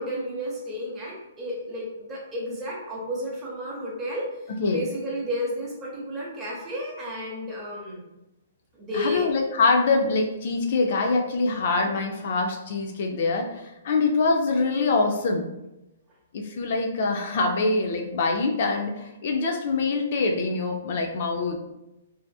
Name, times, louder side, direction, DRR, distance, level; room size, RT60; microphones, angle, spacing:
voice 1, 0.0-4.3 4.7-8.0 8.7-9.3, equal, 15° right, -4 dB, 0.7 m, -32 dB
voice 2, 8.9-15.5 16.3-21.6, left 3 dB, 50° left, 2 dB, 0.3 m, -24 dB
2.5 x 2.4 x 2.3 m, 0.94 s
hypercardioid pair, 155°, 0 cm